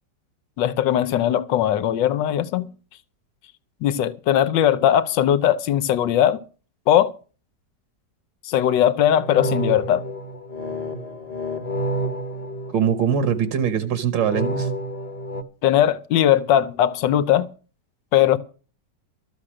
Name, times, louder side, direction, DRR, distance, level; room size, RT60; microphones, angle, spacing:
voice 1, 0.6-2.6 3.8-6.4 6.9-7.1 8.4-10.0 15.6-17.5 18.1-18.4, left 11 dB, 90° left, 1.5 m, -19 dB
sound 1, 9.1-13.4 14.2-15.4, right 1 dB, 25° left, 1.0 m, -29 dB
voice 2, 12.7-14.7, right 8 dB, 80° right, 1.9 m, -22 dB
13.5 x 6.6 x 8.7 m
omnidirectional pair, 1.9 m